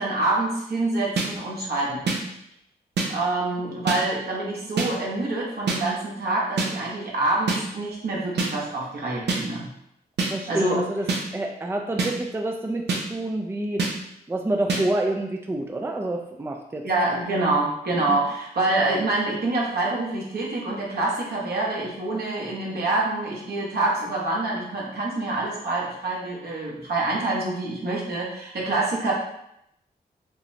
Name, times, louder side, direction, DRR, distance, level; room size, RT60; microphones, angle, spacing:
voice 1, 0.0-2.2 3.1-9.7 10.5-10.8 16.8-29.1, right 2 dB, 65° right, -4 dB, 1.3 m, -26 dB
sound 1, 1.2-1.3 2.1-2.2 3.0-3.1 3.9-4.0 4.8-4.9 5.7-5.8 6.6-6.7 7.5-7.6 8.4-8.5 9.3-9.4 10.2-10.3 11.1-11.2 12.0-12.1 12.9-13.0 13.8-13.9 14.7-14.8, right 4 dB, 85° right, 0.7 m, -24 dB
voice 2, 10.3-11.1 11.3-12.8 13.1-13.8 14.3-16.8 18.1-18.2, right 1 dB, 15° right, 2 dB, 0.4 m, -27 dB
5.4 x 2.0 x 2.8 m, 0.78 s
cardioid pair, 60°, 17 cm